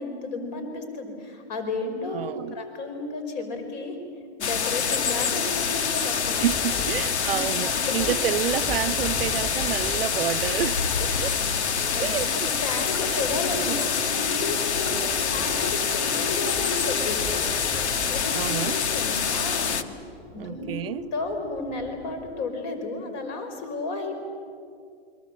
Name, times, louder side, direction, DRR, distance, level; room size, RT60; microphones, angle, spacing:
voice 1, 0.0-4.0 4.4-6.5 6.7-6.8 7.2-8.1 11.9-17.5 18.1-19.7 20.3-24.2, left 3 dB, 40° left, 5.2 m, -33 dB
voice 2, 2.1-2.5 6.4-11.4 12.0-12.3 13.1-13.2 13.7-14.1 14.9-15.4 18.3-18.8 20.4-21.0, right 11 dB, 60° right, 0.8 m, -29 dB
sound 1, 4.4-19.8, left 6 dB, 80° left, 1.7 m, -26 dB
Thunder, 6.1-22.4, left 1 dB, 20° left, 3.1 m, -41 dB
29.5 x 23.0 x 8.2 m
hypercardioid pair, 160°, 33 cm